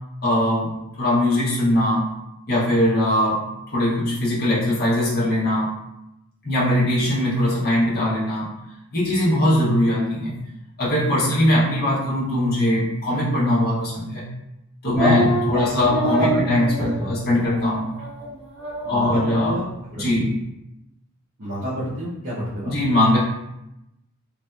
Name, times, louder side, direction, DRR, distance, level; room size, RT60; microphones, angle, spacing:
voice 1, 0.2-2.1 2.5-5.7 6.4-8.5 8.9-10.4 10.8-14.3 14.8-17.9 18.8-19.6 19.9-20.3 22.7-23.2, left 1 dB, 45° left, -8 dB, 0.8 m, -21 dB
voice 2, 14.9-16.5 16.8-17.1 18.8-19.6 19.9-20.0 21.4-22.7, equal, 55° right, -10 dB, 0.8 m, -27 dB
sound 1, 15.0-15.5 15.9-17.1 17.4-17.5 18.0-18.3 18.5-19.4, right 3 dB, 25° left, 1.1 m, -26 dB
3.1 x 2.6 x 2.3 m, 0.89 s
head